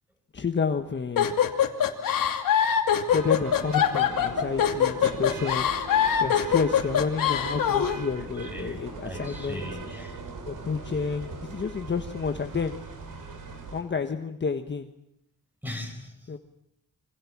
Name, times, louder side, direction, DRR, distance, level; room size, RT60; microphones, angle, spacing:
voice 1, 0.3-1.5 3.1-5.7 6.2-9.7 10.4-12.8 13.7-14.9 16.3-16.4, left 5 dB, 35° left, 6 dB, 1.5 m, -30 dB
sound 1, 1.2-8.0, left 9 dB, 90° left, 2.7 m, -23 dB
sound 2, 3.1-13.8, right 4 dB, 75° right, 6.1 m, -39 dB
voice 2, 8.2-10.2 15.6-16.4, left 1 dB, 5° right, 4 dB, 7.0 m, -39 dB
27.5 x 26.0 x 7.4 m, 0.79 s
wide cardioid pair, 125°, 33 cm